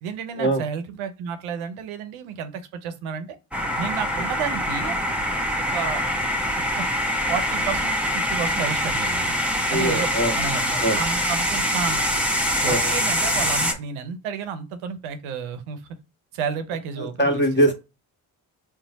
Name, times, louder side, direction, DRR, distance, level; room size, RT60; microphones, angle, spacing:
voice 1, 0.0-3.4 3.8-5.0 5.7-6.0 6.7-6.9 7.3-9.3 9.7-10.1 10.4-12.1 12.6-15.8 16.3-17.4, right 7 dB, 85° right, 0.7 m, -31 dB
sound 1, 3.5-13.7, equal, 5° right, 0.8 m, -24 dB
voice 2, 9.7-10.4 10.8-11.0 12.6-12.9 17.0-17.7, right 1 dB, 25° left, 1.3 m, -22 dB
4.3 x 2.1 x 4.0 m
supercardioid pair, 55°, 48 cm